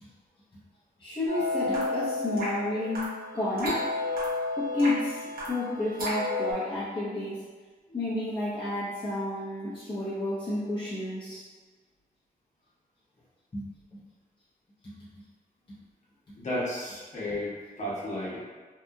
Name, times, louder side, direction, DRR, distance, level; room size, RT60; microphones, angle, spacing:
voice 1, 1.0-3.1 3.3-3.9 4.6-5.2 5.5-7.5 7.9-11.5 13.5-14.0 14.8-14.9 17.3-17.4, left 1 dB, 30° left, -10 dB, 0.7 m, -31 dB
sound 1, 1.3-6.5, left 2 dB, 65° right, 0.9 m, -32 dB
voice 2, 16.4-18.4, left 1 dB, 45° left, -7 dB, 1.0 m, -33 dB
2.8 x 2.5 x 2.3 m, 1.4 s
cardioid pair, 80°, 16 cm